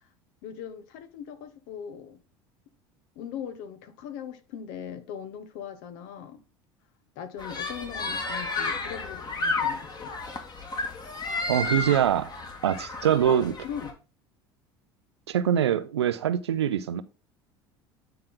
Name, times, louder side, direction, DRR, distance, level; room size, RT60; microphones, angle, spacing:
voice 1, 0.4-2.2 3.2-6.4 7.2-10.1 13.6-13.9, left 8 dB, 65° left, 1.1 m, -40 dB
sound 1, 7.4-13.9, left 3 dB, 30° left, 1.7 m, -32 dB
voice 2, 11.5-12.3 12.6-13.6 15.3-17.0, right 10 dB, 85° right, 0.6 m, -24 dB
9.0 x 4.3 x 3.8 m
hypercardioid pair, 70°, 14 cm